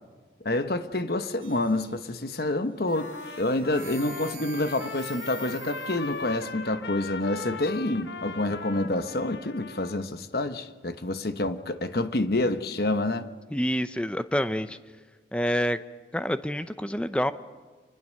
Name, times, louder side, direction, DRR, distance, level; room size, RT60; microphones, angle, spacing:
voice 1, 0.4-13.3, left 2 dB, 60° left, 1.0 m, -28 dB
sound 1, 1.4-2.3 2.8-6.5, right 8 dB, 50° right, 2.6 m, -47 dB
Trumpet, 2.9-10.1, left 4 dB, 80° left, 1.1 m, -39 dB
voice 2, 13.5-14.8 15.3-15.8 16.1-17.3, equal, 5° left, 0.6 m, -27 dB
26.5 x 20.0 x 6.5 m
head